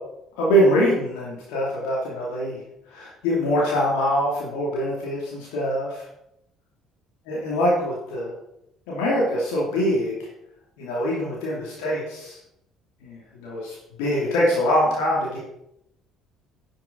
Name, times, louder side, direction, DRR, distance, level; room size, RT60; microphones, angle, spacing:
voice 1, 0.4-2.6 2.9-6.1 7.3-8.3 8.9-10.3 10.8-12.4 13.0-15.4, equal, 65° left, -5 dB, 2.6 m, -24 dB
11.0 x 7.5 x 3.9 m, 0.81 s
figure-of-eight pair, 55°, 0 cm